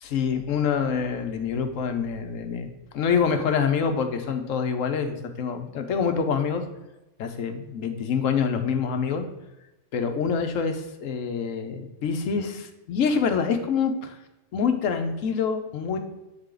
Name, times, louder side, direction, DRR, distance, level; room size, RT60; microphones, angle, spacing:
voice 1, 0.0-2.7 2.9-6.6 7.2-9.3 9.9-14.2 14.5-16.0, left 6 dB, 80° left, 6 dB, 1.1 m, -26 dB
8.1 x 4.0 x 3.8 m, 1.0 s
omnidirectional pair, 1.3 m